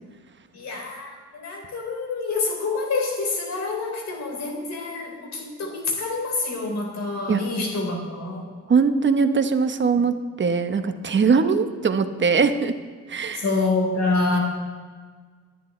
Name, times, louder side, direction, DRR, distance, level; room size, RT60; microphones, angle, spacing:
voice 1, 0.5-8.4 13.4-14.4, left 3 dB, 60° left, 0 dB, 4.8 m, -27 dB
voice 2, 8.7-12.7 13.1-13.5, right 5 dB, 40° right, 8 dB, 1.1 m, -21 dB
22.5 x 10.5 x 3.3 m, 1.5 s
cardioid pair, 90°, 30 cm